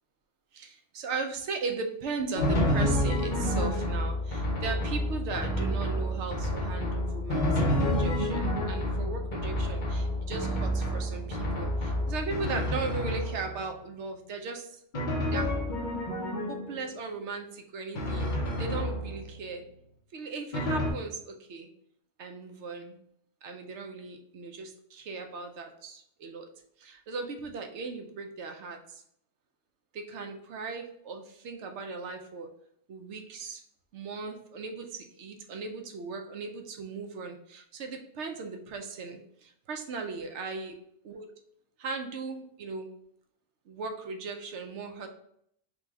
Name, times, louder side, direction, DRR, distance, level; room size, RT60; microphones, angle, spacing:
voice 1, 0.5-14.8 15.3-15.5 16.5-18.3 18.6-19.6 20.1-21.7 22.2-23.0 23.4-26.5 26.8-29.0 29.9-32.5 32.9-33.6 33.9-40.8 41.0-41.3 41.8-42.9 43.7-45.1, right 4 dB, 85° right, 4 dB, 0.9 m, -38 dB
Drum, 2.3-13.7 14.9-16.9 17.9-19.4 20.5-20.9, left 1 dB, 45° left, 0.9 m, -29 dB
3.8 x 2.3 x 4.6 m, 0.71 s
omnidirectional pair, 1.2 m